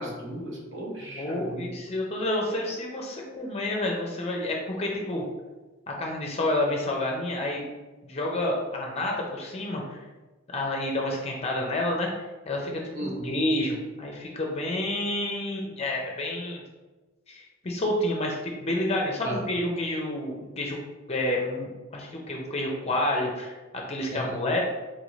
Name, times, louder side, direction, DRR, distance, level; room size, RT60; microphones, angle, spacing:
voice 1, 0.0-1.7 12.9-13.3 19.2-19.4 24.1-24.4, right 1 dB, 65° right, -2 dB, 1.0 m, -35 dB
voice 2, 1.1-5.2 5.9-7.6 8.0-10.0 10.5-16.6 17.3-20.8 21.1-23.5 23.9-24.6, left 1 dB, 30° left, 0 dB, 0.5 m, -29 dB
4.1 x 2.6 x 3.0 m, 1.2 s
head